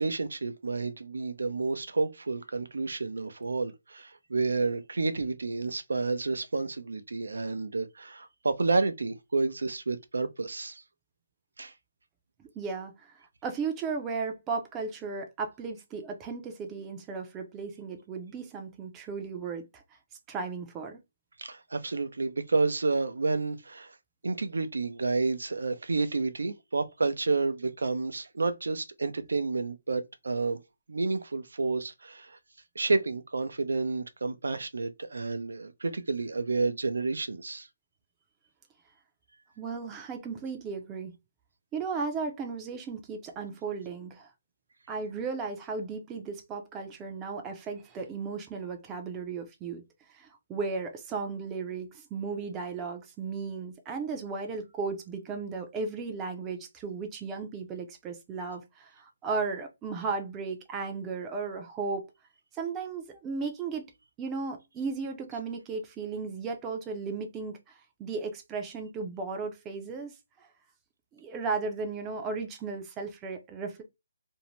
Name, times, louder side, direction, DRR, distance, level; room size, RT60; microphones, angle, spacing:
voice 1, 0.0-10.8 11.6-11.7 21.4-24.0 24.2-30.6 30.9-32.4 32.8-37.7, right 3 dB, 90° right, 0.5 m, -30 dB
voice 2, 12.4-19.8 20.3-21.0 39.6-41.1 41.7-44.3 44.9-49.8 50.1-62.1 62.5-63.9 64.2-70.5 71.1-73.8, right 4 dB, 15° right, 0.5 m, -35 dB
2.6 x 2.1 x 2.9 m
hypercardioid pair, 170°, 0 cm